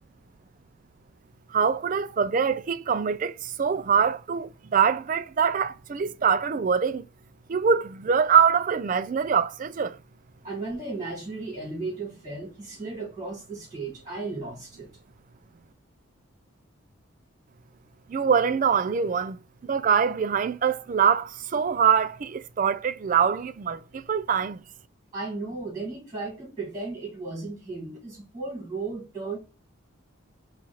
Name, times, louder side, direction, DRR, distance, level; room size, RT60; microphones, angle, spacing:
voice 1, 1.5-7.1 7.5-10.0 18.1-24.6, right 6 dB, 40° right, 0.3 m, -24 dB
voice 2, 10.4-14.9 25.1-29.4, right 3 dB, 20° right, 2.3 m, -35 dB
4.5 x 2.5 x 4.2 m
head